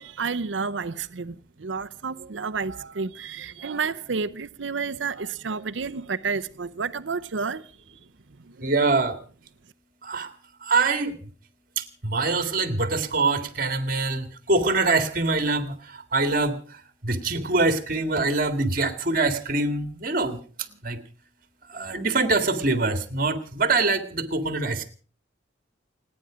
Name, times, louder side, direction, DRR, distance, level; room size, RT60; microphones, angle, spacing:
voice 1, 0.0-7.7 8.6-8.7, right 5 dB, 80° right, 0.7 m, -30 dB
voice 2, 8.6-9.1 10.1-10.3 10.7-11.1 12.0-14.2 14.5-15.7 16.1-16.6 17.0-20.4 20.9-21.0 21.8-24.9, right 3 dB, 45° right, 2.0 m, -24 dB
29.5 x 9.8 x 5.0 m
head